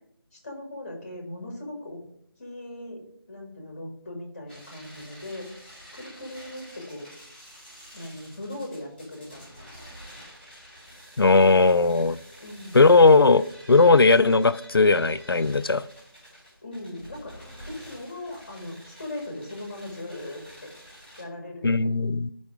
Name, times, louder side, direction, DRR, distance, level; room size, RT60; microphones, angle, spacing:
voice 1, 0.3-2.0 2.4-3.0 3.3-5.5 5.9-7.1 7.9-9.5 12.4-12.8 16.6-17.4 17.7-20.7 21.2-21.9, left 1 dB, 25° left, 1.9 m, -39 dB
sound 1, 4.5-21.2, equal, 5° left, 3.6 m, -48 dB
voice 2, 11.2-12.2 12.7-15.8 21.6-22.3, left 3 dB, 70° left, 0.4 m, -18 dB
11.0 x 5.2 x 3.5 m
figure-of-eight pair, 165°, 13 cm